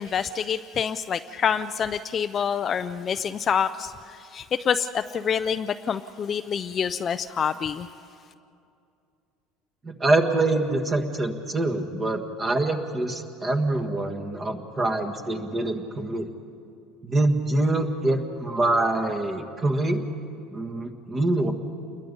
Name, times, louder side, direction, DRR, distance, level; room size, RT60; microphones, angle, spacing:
voice 1, 0.0-7.9, left 7 dB, 30° left, 11 dB, 0.4 m, -27 dB
voice 2, 9.8-16.3 17.0-20.0 20.5-21.5, right 2 dB, 20° right, 5 dB, 1.5 m, -25 dB
28.5 x 21.5 x 5.4 m, 2.5 s
cardioid pair, 150°, 0 cm